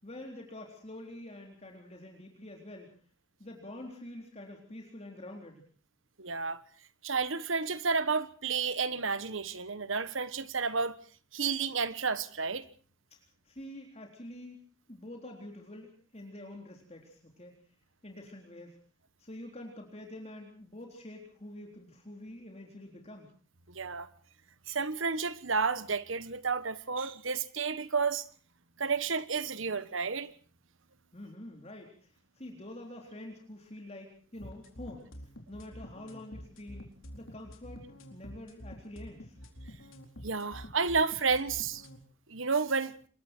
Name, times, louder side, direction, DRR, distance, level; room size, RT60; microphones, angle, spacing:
voice 1, 0.0-2.9 3.4-5.7 13.5-17.5 18.0-18.8 19.2-23.3 31.1-35.1 35.5-36.9 37.1-39.4, left 1 dB, 30° left, 3.8 m, -47 dB
voice 2, 6.2-6.6 7.0-10.9 11.3-12.6 23.7-24.1 24.7-28.2 28.8-30.3 40.2-41.8 42.3-42.9, right 5 dB, 70° right, 1.3 m, -31 dB
sound 1, 34.4-42.0, equal, 70° left, 4.3 m, -47 dB
27.0 x 22.5 x 4.5 m
head